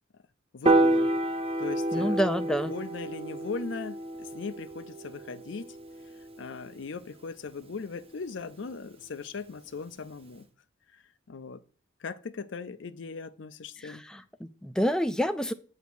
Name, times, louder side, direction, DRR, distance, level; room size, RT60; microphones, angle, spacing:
voice 1, 0.5-1.1 1.6-2.2 2.7-5.8 6.4-10.5 10.9-11.6 12.0-14.0, left 4 dB, 65° left, 0.5 m, -39 dB
Piano, 0.7-7.0, right 2 dB, 30° right, 0.7 m, -29 dB
voice 2, 1.9-2.7 13.8-15.5, equal, 5° left, 0.4 m, -28 dB
8.2 x 2.8 x 6.0 m
head